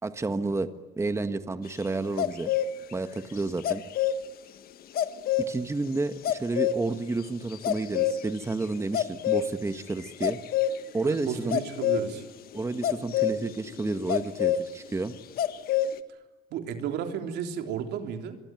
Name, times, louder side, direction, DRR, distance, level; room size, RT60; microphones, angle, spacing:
voice 1, 0.0-0.7 1.0-2.5 2.9-3.8 5.5-10.4 10.9-11.6 12.5-15.1, right 3 dB, 15° right, 10 dB, 1.4 m, -30 dB
sound 1, 2.2-2.7 3.6-4.2 5.0-5.5 6.2-6.8 7.5-8.2 8.9-9.8 10.2-10.8 11.5-12.2 12.5-14.6 15.4-16.0, left 10 dB, 65° left, 1.6 m, -26 dB
voice 2, 11.0-12.2 16.5-18.4, right 8 dB, 80° right, 6 dB, 3.4 m, -33 dB
26.0 x 23.5 x 9.1 m, 1.1 s
cardioid pair, 110°, 17 cm